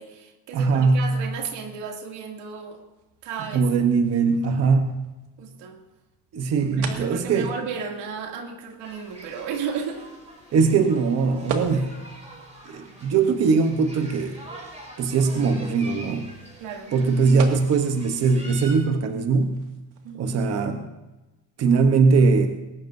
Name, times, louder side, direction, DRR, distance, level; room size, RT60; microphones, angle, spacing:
voice 1, 0.0-2.8 3.2-3.6 5.4-5.8 6.7-10.1 12.6-12.8 16.6-16.9 20.0-20.5, right 6 dB, 85° right, 2 dB, 2.7 m, -34 dB
voice 2, 0.5-1.2 3.5-5.0 6.3-7.5 10.5-12.0 12.7-14.4 15.0-16.3 16.9-19.7 20.2-20.8 21.6-22.5, right 4 dB, 40° right, 6 dB, 1.0 m, -21 dB
sound 1, 2.5-20.2, right 6 dB, 65° right, 2.1 m, -42 dB
sound 2, 8.8-18.8, right 1 dB, 15° right, 4.9 m, -44 dB
20.5 x 18.5 x 2.7 m, 1.0 s
cardioid pair, 180°, 41 cm